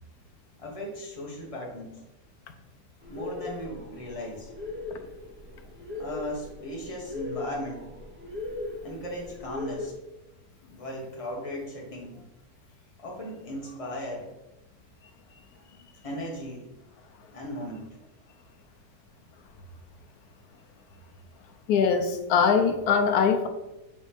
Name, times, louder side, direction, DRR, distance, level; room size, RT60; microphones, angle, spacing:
voice 1, 0.6-2.0 3.1-4.5 6.0-7.9 8.8-10.0 10.7-12.2 13.0-14.3 15.3-16.7 17.3-17.9, equal, 20° left, -2 dB, 1.3 m, -37 dB
sound 1, 3.0-9.9, left 2 dB, 10° right, 1.0 m, -39 dB
voice 2, 21.7-23.5, left 6 dB, 70° left, 7 dB, 1.1 m, -22 dB
7.3 x 4.1 x 3.4 m, 0.98 s
omnidirectional pair, 1.8 m